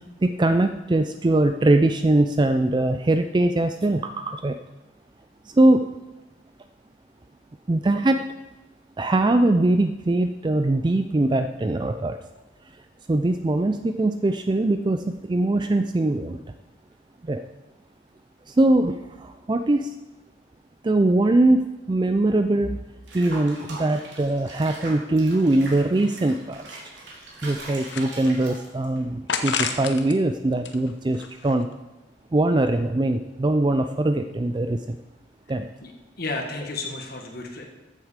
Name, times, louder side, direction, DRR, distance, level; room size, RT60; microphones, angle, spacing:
voice 1, 0.2-4.6 5.5-5.9 7.7-8.2 9.0-12.2 13.1-16.4 17.2-17.4 18.5-19.9 20.8-22.8 23.1-26.8 27.4-31.7 32.3-35.0 35.5-35.7, right 2 dB, 25° right, 8 dB, 0.4 m, -22 dB
Water / Bathtub (filling or washing), 23.1-29.0, right 2 dB, 75° right, 3.5 m, -41 dB
sound 1, 27.2-28.6 29.3-30.2 30.5-31.7, left 6 dB, 80° left, 1.1 m, -31 dB
voice 2, 36.2-37.7, left 2 dB, 55° left, 2 dB, 1.7 m, -32 dB
14.5 x 7.9 x 5.1 m, 1.1 s
head